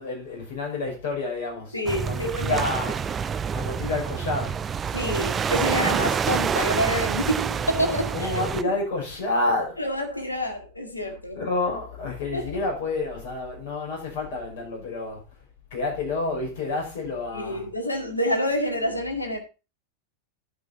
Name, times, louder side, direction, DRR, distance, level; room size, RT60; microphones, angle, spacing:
voice 1, 0.0-1.8 2.0-2.9 3.5-4.6 8.1-9.8 11.3-15.2 15.7-17.7, left 2 dB, 55° left, 6.1 m, -29 dB
voice 2, 1.7-2.6 4.9-8.5 9.8-11.4 12.3-12.4 17.3-19.4, equal, 85° left, 2.0 m, -27 dB
sound 1, 1.9-8.6, right 7 dB, 20° right, 0.4 m, -27 dB
11.5 x 5.7 x 4.2 m
figure-of-eight pair, 90°, 0 cm